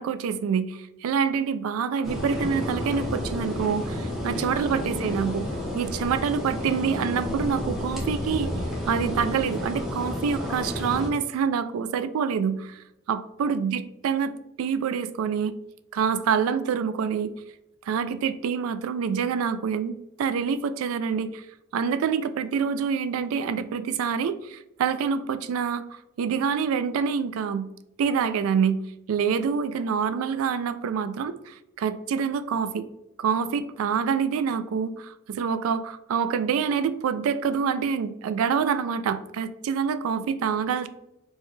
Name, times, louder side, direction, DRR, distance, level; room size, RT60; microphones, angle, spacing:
voice 1, 0.0-5.5 5.7-8.5 8.9-12.8 13.1-15.5 15.9-17.3 17.9-21.4 21.7-27.7 28.0-28.8 29.1-32.8 33.2-40.9, right 6 dB, 85° right, 13 dB, 0.3 m, -26 dB
sound 1, 2.0-11.1, left 1 dB, ahead, 0.7 m, -31 dB
4.5 x 2.2 x 3.1 m, 0.88 s
head